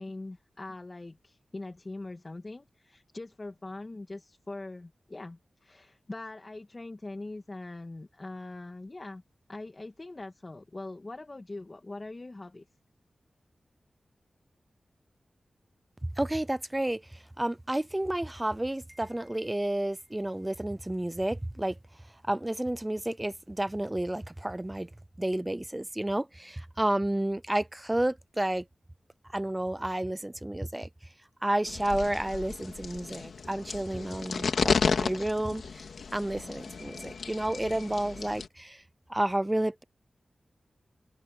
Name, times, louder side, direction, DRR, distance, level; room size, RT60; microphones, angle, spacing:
voice 1, 0.0-9.2 9.5-12.7, left 2 dB, 35° left, 2.0 m, -42 dB
voice 2, 16.2-21.8 22.3-24.9 25.2-28.6 29.3-30.9 31.4-35.9 36.1-38.8 39.1-39.8, right 1 dB, 15° right, 0.6 m, -31 dB
sound 1, 31.7-38.5, left 5 dB, 90° left, 2.3 m, -33 dB
wide cardioid pair, 80°, 0 cm